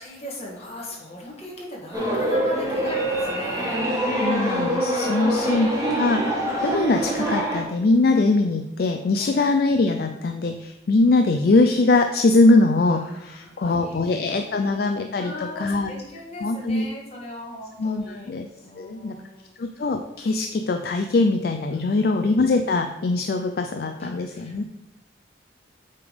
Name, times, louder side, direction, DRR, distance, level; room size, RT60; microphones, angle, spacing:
voice 1, 0.0-3.8 4.9-5.7 9.2-9.4 12.9-14.9 15.1-18.3 18.6-19.6 21.9-22.2 24.0-24.6, equal, 35° left, -3 dB, 1.9 m, -38 dB
sound 1, 1.9-7.6, right 1 dB, 15° right, 1.4 m, -25 dB
voice 2, 4.2-15.9 16.4-16.9 17.8-18.5 18.8-19.2 19.6-24.6, left 3 dB, 55° left, 6 dB, 0.4 m, -22 dB
8.3 x 3.5 x 5.1 m, 0.89 s
head